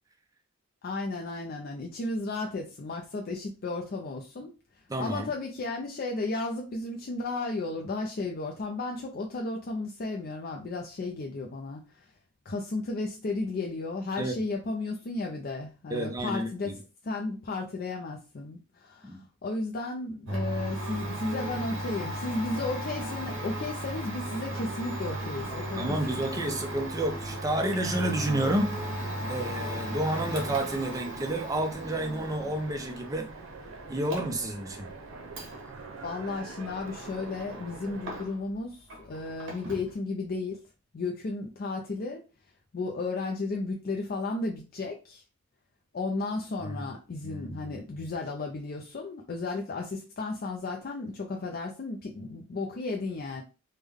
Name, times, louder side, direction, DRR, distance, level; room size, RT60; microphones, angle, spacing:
voice 1, 0.8-4.5 5.0-12.1 12.5-26.5 36.0-40.6 40.9-42.2 42.7-45.2 45.9-53.4, left 3 dB, 45° left, 0.4 m, -34 dB
voice 2, 4.9-5.3 14.2-14.4 15.9-16.7 19.0-19.2 25.7-33.3 33.9-34.9 46.6-46.8 47.2-47.8, right 1 dB, 15° right, 0.5 m, -30 dB
Domestic sounds home sounds, 20.3-38.6 38.9-39.9, right 1 dB, 60° right, 1.0 m, -37 dB
Train, 22.8-38.2, right 3 dB, 85° right, 0.7 m, -45 dB
3.4 x 2.1 x 3.4 m
head